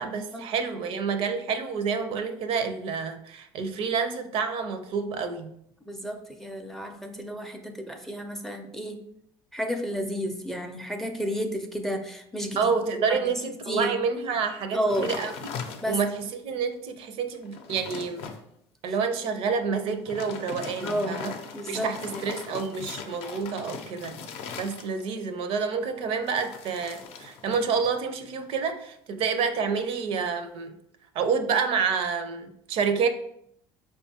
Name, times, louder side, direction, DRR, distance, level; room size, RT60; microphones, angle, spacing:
voice 1, 0.0-5.5 12.6-18.2 18.8-21.3 21.7-24.2 24.6-30.7 31.1-33.1, right 5 dB, 60° right, 8 dB, 0.5 m, -28 dB
voice 2, 5.9-9.0 9.5-12.7 13.1-13.2 13.7-13.9 14.7-15.1 15.8-16.0 20.8-21.3 21.5-22.2, equal, 5° left, 5 dB, 0.4 m, -31 dB
sound 1, 14.9-16.2 16.7-16.8 17.3-18.4 19.9-25.2 26.2-27.9 28.2-28.6, left 6 dB, 65° left, 0.5 m, -40 dB
4.8 x 2.3 x 2.8 m, 0.72 s
supercardioid pair, 105°, 11 cm